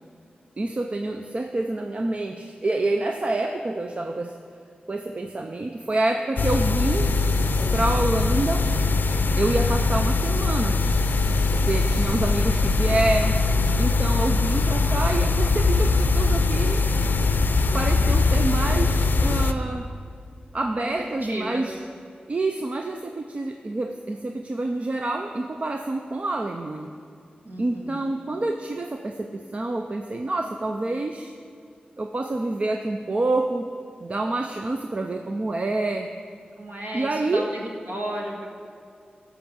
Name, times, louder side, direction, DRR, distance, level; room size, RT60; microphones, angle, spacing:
voice 1, 0.6-4.4 4.9-7.1 7.7-8.7 9.3-10.9 11.5-13.4 13.8-16.9 17.7-19.9 20.5-21.7 22.3-26.9 27.6-31.4 32.0-33.7 34.0-36.1 36.9-37.5, right 2 dB, 40° right, 5 dB, 0.5 m, -27 dB
sound 1, 6.4-19.5, left 3 dB, 75° left, 0.5 m, -21 dB
voice 2, 21.0-21.7 27.4-28.1 36.6-38.5, right 1 dB, 60° right, -1 dB, 1.9 m, -34 dB
14.0 x 6.0 x 6.2 m, 2.4 s
wide cardioid pair, 115°, 3 cm